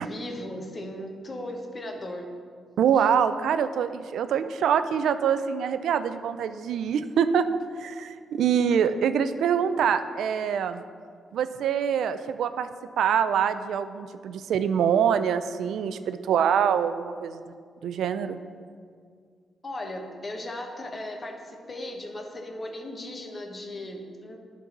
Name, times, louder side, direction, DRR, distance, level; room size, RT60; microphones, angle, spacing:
voice 1, 0.0-2.3 3.0-3.1 19.6-24.4, left 1 dB, 35° left, 3 dB, 1.2 m, -37 dB
voice 2, 2.8-7.5 7.8-10.8 11.3-12.7 13.0-17.4 17.8-18.4, right 8 dB, 85° right, 11 dB, 0.4 m, -25 dB
10.5 x 4.0 x 6.0 m, 2.1 s
cardioid pair, 85°, 0 cm